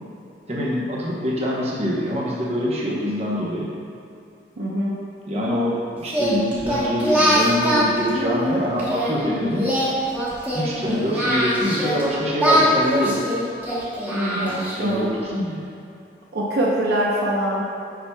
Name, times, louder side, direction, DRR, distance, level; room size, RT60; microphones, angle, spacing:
voice 1, 0.5-3.7 5.3-9.8 10.5-13.2 14.3-15.6, equal, 35° right, -5 dB, 0.9 m, -24 dB
voice 2, 4.6-5.0 14.1-15.0 16.3-17.6, right 1 dB, 60° right, -4 dB, 0.7 m, -23 dB
Singing, 6.1-9.1 9.5-12.0 12.4-15.0, equal, 10° right, 1.1 m, -22 dB
7.4 x 5.6 x 2.3 m, 2.6 s
head